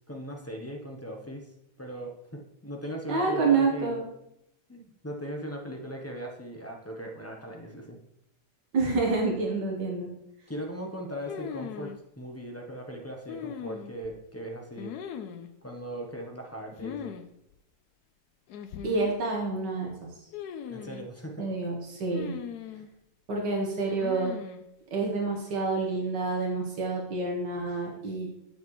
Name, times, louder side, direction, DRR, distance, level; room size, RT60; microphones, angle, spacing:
voice 1, 0.1-1.5 1.8-4.0 4.7-8.0 10.5-14.9 15.6-17.1 20.7-21.5 22.7-22.8, equal, 15° left, 1 dB, 0.5 m, -39 dB
voice 2, 3.1-4.0 8.7-10.1 18.8-19.9 21.4-22.4 23.3-24.3 24.9-28.3, right 3 dB, 90° right, -1 dB, 1.9 m, -28 dB
sound 1, 11.3-12.0 13.3-14.1 14.8-15.5 16.8-17.2 17.5-17.6 18.5-19.2 20.3-21.1 22.1-22.9 23.9-24.6, left 8 dB, 75° left, 1.1 m, -39 dB
9.1 x 7.2 x 3.1 m, 0.82 s
omnidirectional pair, 1.8 m